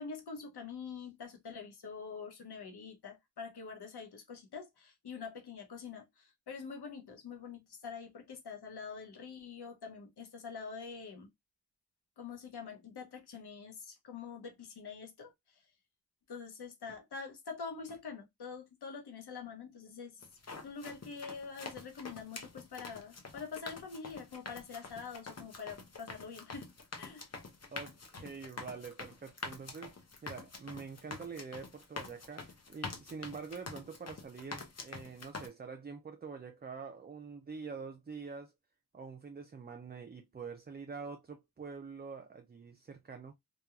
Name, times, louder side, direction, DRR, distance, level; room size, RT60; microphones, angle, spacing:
voice 1, 0.0-11.3 12.2-15.3 16.3-20.2 20.6-26.7 27.0-27.3, left 5 dB, 80° left, 0.9 m, -45 dB
sound 1, 20.2-35.5, left 4 dB, 40° left, 0.7 m, -46 dB
voice 2, 27.7-29.9 30.2-38.5 38.9-43.3, right 5 dB, 25° right, 0.4 m, -46 dB
3.0 x 2.2 x 2.3 m
cardioid pair, 50°, 39 cm